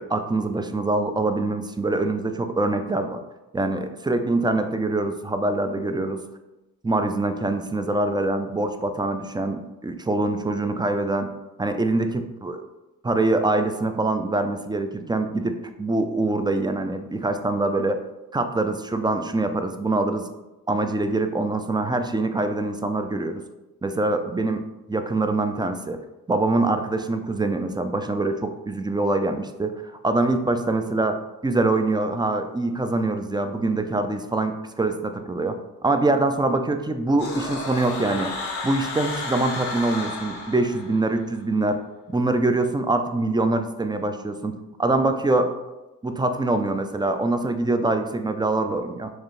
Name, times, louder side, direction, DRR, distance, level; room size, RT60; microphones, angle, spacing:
voice 1, 0.0-3.2 3.5-6.2 6.8-11.3 11.6-12.6 13.0-18.0 18.3-20.3 20.7-23.4 23.8-24.6 24.9-26.0 26.3-29.7 30.0-31.2 31.4-35.6 35.8-38.3 38.6-41.8 42.1-44.5 44.8-45.5 46.0-49.1, right 2 dB, 10° right, 7 dB, 0.4 m, -24 dB
sound 1, 37.2-41.2, left 3 dB, 90° left, 0.9 m, -32 dB
4.7 x 2.4 x 3.1 m, 1.0 s
supercardioid pair, 45°, 38 cm